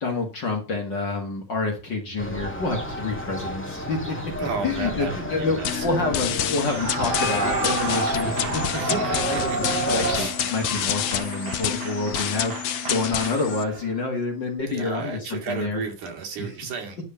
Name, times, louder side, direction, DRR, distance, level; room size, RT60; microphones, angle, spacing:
voice 1, 0.0-8.6 9.1-15.8, left 3 dB, 40° left, 2 dB, 2.1 m, -28 dB
sound 1, 2.2-10.2, equal, 5° left, 1.3 m, -30 dB
voice 2, 4.4-5.9 8.8-9.8 10.1-10.4 14.6-17.0, right 5 dB, 75° right, 4 dB, 3.6 m, -33 dB
sound 2, 5.6-13.6, left 10 dB, 70° left, 1.7 m, -29 dB
Clapping / Cheering / Applause, 6.6-14.0, right 4 dB, 55° right, 2.7 m, -32 dB
11.0 x 4.6 x 7.0 m, 0.31 s
omnidirectional pair, 3.6 m